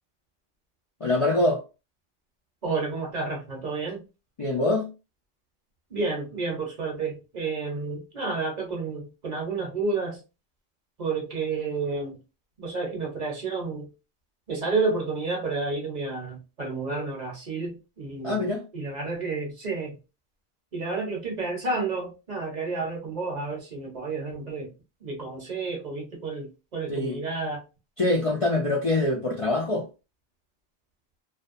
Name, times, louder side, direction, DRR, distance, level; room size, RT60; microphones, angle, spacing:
voice 1, 1.0-1.6 4.4-4.9 18.2-18.6 26.9-27.2 28.0-29.9, left 2 dB, 45° left, 0.5 m, -24 dB
voice 2, 2.6-4.0 5.9-10.2 11.0-12.2 12.6-13.9 14.5-18.5 18.7-20.0 20.7-24.7 25.0-27.6, right 3 dB, 45° right, 0.8 m, -30 dB
2.5 x 2.1 x 2.5 m
omnidirectional pair, 1.1 m